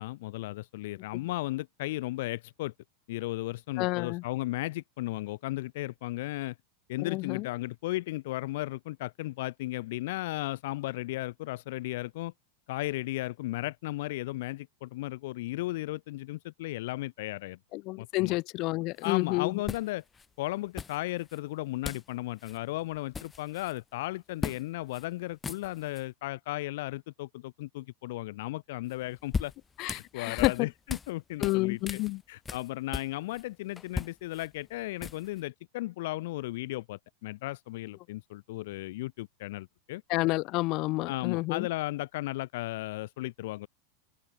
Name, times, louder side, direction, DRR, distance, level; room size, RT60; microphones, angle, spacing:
voice 1, 0.0-2.7 3.1-6.5 6.9-12.3 12.7-17.6 18.0-18.4 19.0-20.0 20.4-29.5 29.9-32.0 32.3-40.0 41.1-43.7, left 18 dB, 70° left, 3.3 m, -35 dB
voice 2, 3.8-4.2 7.0-7.5 17.7-19.5 29.8-30.7 31.4-32.2 40.1-41.7, left 22 dB, 50° left, 4.7 m, -29 dB
sound 1, 19.0-19.1 19.6-20.3 20.8-21.4 21.8-22.1 22.4-22.6 22.9-23.8 24.4-24.6 24.9-25.0 25.3-26.0 28.9-31.1 31.4-33.4 33.8-35.4, left 5 dB, 15° left, 2.8 m, -38 dB
open air
supercardioid pair, 125°, 0 cm